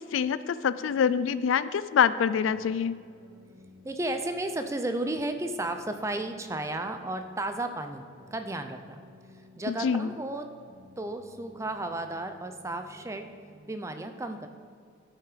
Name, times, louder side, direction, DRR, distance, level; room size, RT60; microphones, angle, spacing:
voice 1, 0.0-3.0 9.7-10.1, left 7 dB, 80° left, 16 dB, 0.3 m, -26 dB
sound 1, 2.4-13.6, left 1 dB, 65° right, 1.8 m, -55 dB
voice 2, 3.8-9.0 9.6-10.5 11.0-13.3 13.7-14.5, right 2 dB, 15° right, 7 dB, 0.5 m, -33 dB
12.5 x 5.9 x 4.9 m, 2.3 s
head